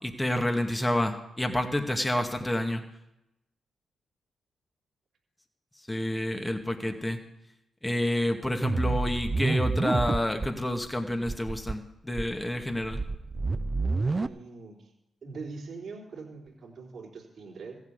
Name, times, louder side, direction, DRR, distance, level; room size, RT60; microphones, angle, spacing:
voice 1, 0.0-2.9 5.9-7.2 7.8-13.0, left 1 dB, 15° left, 5 dB, 2.2 m, -29 dB
voice 2, 6.3-6.6 13.8-14.9 15.2-17.8, right 4 dB, 60° right, 0 dB, 3.3 m, -43 dB
sound 1, 8.6-10.5 10.8-10.9 11.2-11.7 12.1-14.3, right 3 dB, 35° right, 0.6 m, -29 dB
15.0 x 7.4 x 8.2 m, 0.85 s
hypercardioid pair, 45°, 0 cm